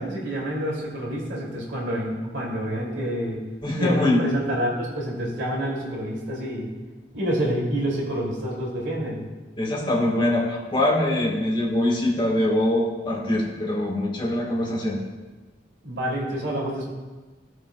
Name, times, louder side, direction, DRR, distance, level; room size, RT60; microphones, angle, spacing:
voice 1, 0.0-3.4 3.8-6.7 7.1-9.2 15.8-16.9, right 1 dB, 75° right, -3 dB, 2.2 m, -28 dB
voice 2, 3.6-4.2 9.6-15.0, left 1 dB, 25° left, -2 dB, 1.4 m, -23 dB
16.0 x 6.1 x 2.2 m, 1.2 s
head